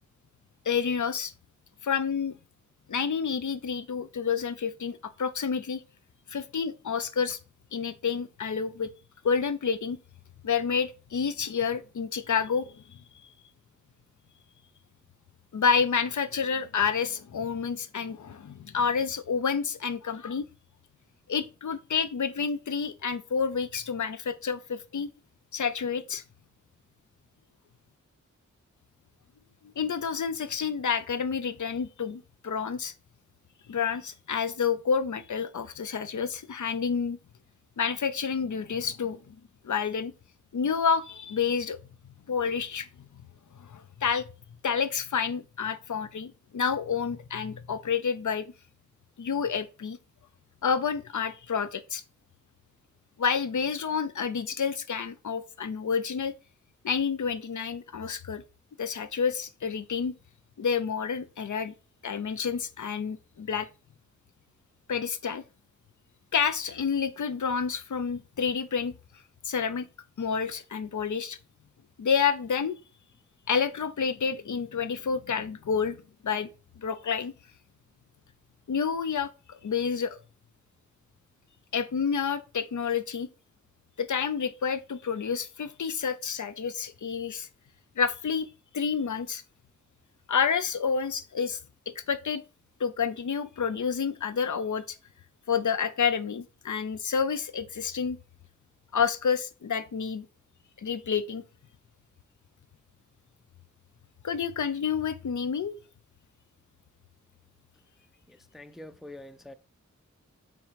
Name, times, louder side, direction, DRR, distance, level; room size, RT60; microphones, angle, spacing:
voice 1, 0.7-1.3 1.8-2.3 2.9-5.8 6.3-7.4 7.7-8.9 9.2-10.0 10.4-13.0 15.5-20.5 21.3-25.1 25.5-26.2 29.8-32.9 33.7-37.2 37.8-39.3 39.6-40.1 40.5-41.8 42.3-42.9 43.6-44.2 44.6-48.5 49.2-50.0 50.6-52.0 53.2-56.3 56.8-58.4 58.8-60.1 60.6-61.7 62.0-63.7 64.9-65.4 66.3-68.9 69.4-69.9 70.2-71.4 72.0-72.8 73.5-76.0 76.2-76.5 76.8-77.3 78.7-80.2 81.7-83.3 84.0-87.5 88.0-88.5 88.7-89.4 90.3-91.6 92.1-92.4 92.8-95.0 95.5-98.2 98.9-100.2 100.8-101.4 104.2-105.8, left 6 dB, 75° left, 0.6 m, -29 dB
voice 2, 108.5-109.5, left 1 dB, ahead, 0.4 m, -44 dB
5.8 x 3.9 x 4.6 m
wide cardioid pair, 85°, 30 cm